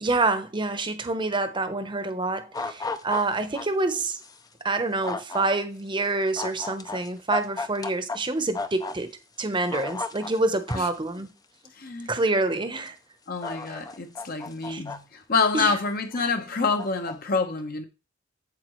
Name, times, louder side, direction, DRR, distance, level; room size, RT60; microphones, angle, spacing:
voice 1, 0.0-4.2 4.6-9.1 9.4-11.3 12.1-12.9 14.7-14.8 15.5-15.7, right 2 dB, 25° right, 0.9 m, -27 dB
sound 1, 2.5-3.7 4.2-4.4 5.0-5.4 6.4-8.2 8.5-9.0 9.4-11.0 11.8-11.9 12.9-13.0 13.4-15.0 15.6-16.3 16.8-17.1, left 3 dB, 20° left, 0.6 m, -34 dB
voice 2, 11.8-12.1 13.3-17.8, left 4 dB, 50° left, 1.0 m, -27 dB
8.5 x 7.3 x 3.1 m
head